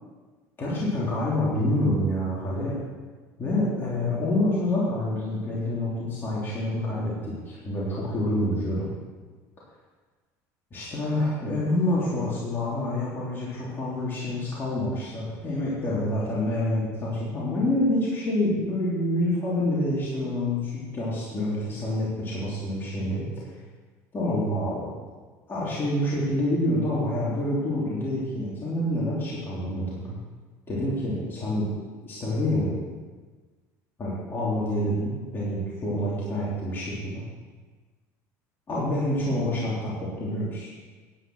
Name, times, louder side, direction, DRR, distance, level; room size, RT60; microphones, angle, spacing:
voice 1, 0.6-2.8 3.4-8.9 10.7-23.3 24.1-24.9 25.5-30.2 30.7-31.7 32.0-32.7 34.0-37.2 38.7-40.7, left 1 dB, 30° left, -7 dB, 3.3 m, -27 dB
10.0 x 9.1 x 6.3 m, 1.4 s
supercardioid pair, 115°, 8 cm